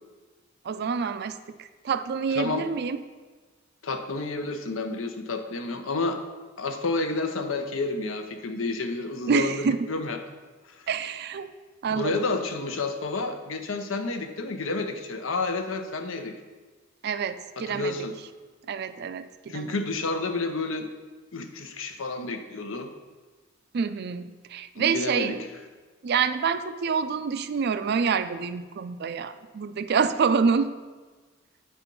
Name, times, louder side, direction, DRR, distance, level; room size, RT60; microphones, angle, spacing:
voice 1, 0.6-3.0 9.3-9.9 10.9-11.5 11.8-12.2 17.0-18.0 18.7-19.7 23.7-25.4 26.0-30.7, right 6 dB, 55° right, 11 dB, 0.4 m, -27 dB
voice 2, 2.3-2.6 3.8-6.2 6.6-10.2 10.7-10.9 11.9-16.4 17.6-18.1 19.5-20.9 21.3-22.9 24.8-25.4, left 3 dB, 80° left, 7 dB, 0.8 m, -30 dB
8.4 x 4.4 x 5.3 m, 1.4 s
head